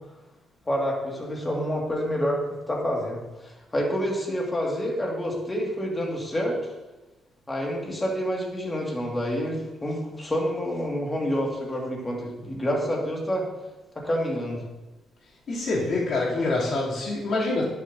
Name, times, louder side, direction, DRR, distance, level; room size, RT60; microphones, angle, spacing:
voice 1, 0.7-2.4 2.7-6.6 7.5-13.4 14.0-14.6, equal, 20° left, -1 dB, 2.3 m, -28 dB
voice 2, 15.5-17.6, left 2 dB, 55° left, -6 dB, 3.3 m, -26 dB
11.0 x 7.3 x 2.9 m, 1.1 s
cardioid pair, 90°, 0 cm